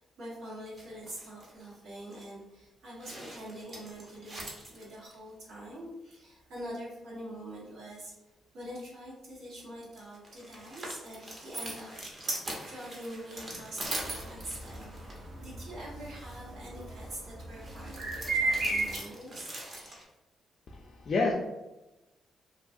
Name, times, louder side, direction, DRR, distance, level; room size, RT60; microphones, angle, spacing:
voice 1, 0.0-8.1 8.5-11.9 12.2-19.6, equal, 90° right, -6 dB, 1.2 m, -45 dB
sound 1, 0.7-1.7 2.1-2.2 3.0-5.1 9.6-15.3 17.5-20.0, right 1 dB, 35° right, 0.7 m, -42 dB
sound 2, 14.0-19.0, right 2 dB, 70° right, 0.8 m, -33 dB
voice 2, 20.7-21.3, left 3 dB, 50° left, -2 dB, 0.4 m, -29 dB
3.0 x 2.3 x 2.6 m, 1.0 s
cardioid pair, 115°, 0 cm